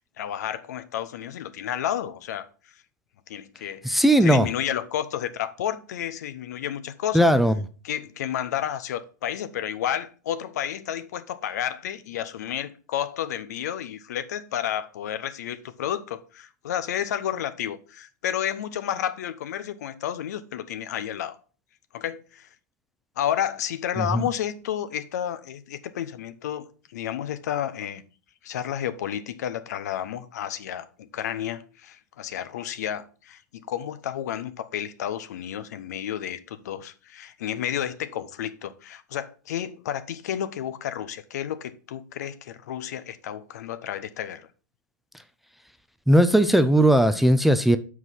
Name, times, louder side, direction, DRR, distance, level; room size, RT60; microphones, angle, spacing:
voice 1, 0.0-2.8 3.3-7.3 7.8-21.4 21.9-22.5 23.2-28.0 28.4-44.5, left 10 dB, 65° left, 0.8 m, -31 dB
voice 2, 3.8-4.5 7.1-7.5 24.0-24.2 46.1-47.8, right 1 dB, ahead, 0.5 m, -18 dB
6.2 x 4.8 x 5.6 m
hypercardioid pair, 115°, 10 cm